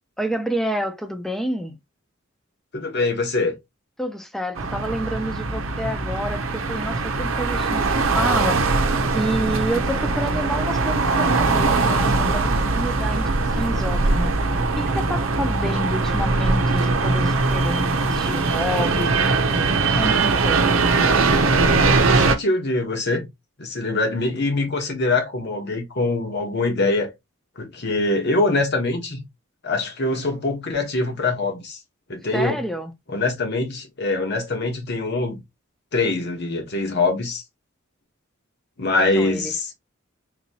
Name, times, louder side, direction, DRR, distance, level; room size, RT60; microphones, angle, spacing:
voice 1, 0.2-1.8 4.0-7.8 8.2-8.6 9.1-14.3 14.8-20.9 32.3-32.9 38.9-39.5, equal, ahead, 0.6 m, -29 dB
voice 2, 2.7-3.5 22.1-23.3 23.6-27.1 27.6-29.2 29.6-31.8 32.1-32.6 33.1-35.4 35.9-37.4 38.8-39.7, left 2 dB, 55° left, 1.2 m, -23 dB
sound 1, 4.6-22.4, right 3 dB, 90° right, 0.7 m, -21 dB
4.0 x 2.8 x 2.8 m
head